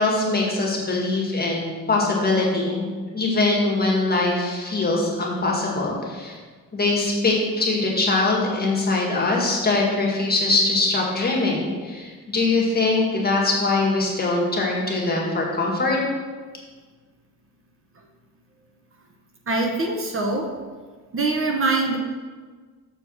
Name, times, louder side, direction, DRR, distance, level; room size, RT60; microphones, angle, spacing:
voice 1, 0.0-2.9 3.1-6.4 6.7-16.0, left 2 dB, 30° left, -3 dB, 1.9 m, -22 dB
voice 2, 19.5-20.4 21.1-22.0, right 3 dB, 40° right, 1 dB, 1.0 m, -23 dB
6.7 x 4.6 x 6.4 m, 1.5 s
wide cardioid pair, 130°, 32 cm